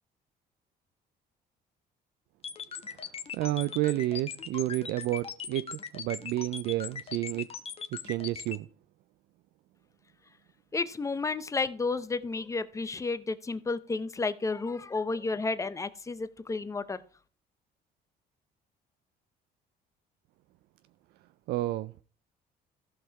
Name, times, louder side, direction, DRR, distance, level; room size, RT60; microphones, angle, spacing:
sound 1, 2.4-8.6, left 7 dB, 35° left, 1.0 m, -39 dB
voice 1, 2.9-7.5 7.9-8.7 21.5-21.9, right 16 dB, 75° right, 0.4 m, -31 dB
voice 2, 10.7-17.0, left 3 dB, 20° left, 0.7 m, -32 dB
14.5 x 5.5 x 4.6 m
cardioid pair, 110°, 17 cm